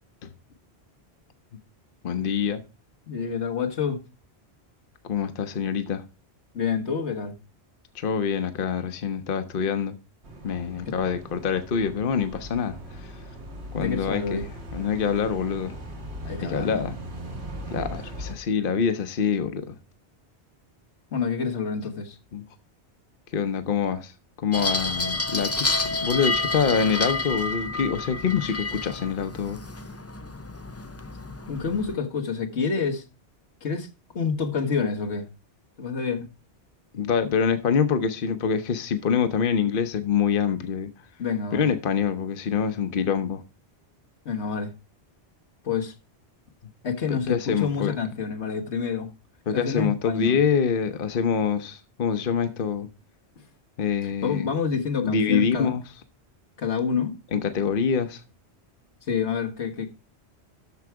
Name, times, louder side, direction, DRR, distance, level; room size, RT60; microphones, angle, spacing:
voice 1, 2.0-2.6 5.0-6.0 7.9-10.0 10.4-13.1 13.7-14.4 14.7-15.8 16.4-17.0 17.7-19.8 22.3-22.4 23.3-24.1 24.4-29.6 36.9-40.9 41.5-43.4 47.1-47.9 49.5-52.9 53.8-54.5 55.0-55.8 57.3-58.2, left 6 dB, 55° left, 1.0 m, -25 dB
voice 2, 3.1-4.0 6.5-7.4 10.9-11.0 13.8-14.5 16.2-16.9 21.1-22.2 31.5-33.0 33.6-33.9 34.1-35.3 35.8-36.3 41.2-41.7 44.2-44.7 45.6-45.9 46.8-49.1 49.5-50.4 54.0-55.7 56.6-57.1 59.1-59.9, left 5 dB, 90° left, 1.7 m, -28 dB
sound 1, 10.2-18.4, right 1 dB, 80° right, 2.1 m, -39 dB
sound 2, 24.5-31.9, left 2 dB, 20° left, 0.4 m, -29 dB
13.0 x 4.8 x 4.7 m
omnidirectional pair, 1.1 m